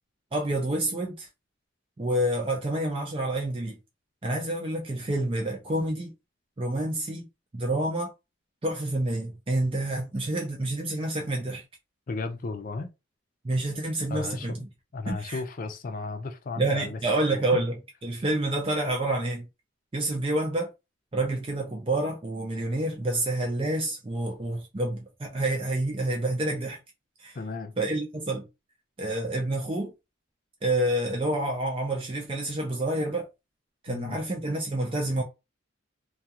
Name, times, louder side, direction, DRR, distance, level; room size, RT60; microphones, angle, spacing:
voice 1, 0.3-1.3 2.0-3.8 4.2-6.1 6.6-7.3 7.5-8.1 8.6-11.6 13.4-14.7 15.1-15.4 16.6-17.7 18.0-19.5 19.9-20.7 21.1-26.8 27.2-27.4 27.8-28.5 29.0-29.9 30.6-33.2 33.8-35.2, right 1 dB, 25° right, 0.4 m, -28 dB
voice 2, 12.1-12.9 14.1-14.7 14.9-17.0 17.5-17.6 27.3-27.8 33.9-34.2, left 3 dB, 40° left, 0.4 m, -34 dB
2.4 x 2.3 x 2.8 m
head